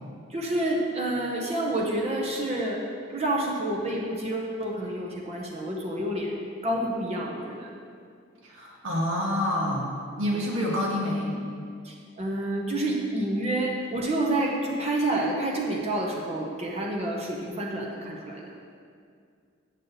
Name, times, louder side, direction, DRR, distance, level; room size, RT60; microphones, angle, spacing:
voice 1, 0.3-2.8 3.1-6.4 6.6-7.7 10.1-10.2 11.8-18.5, right 1 dB, 30° right, -2 dB, 0.8 m, -28 dB
voice 2, 8.4-9.9 10.2-11.4, left 1 dB, 75° right, -3 dB, 1.5 m, -27 dB
9.3 x 6.5 x 4.0 m, 2.2 s
head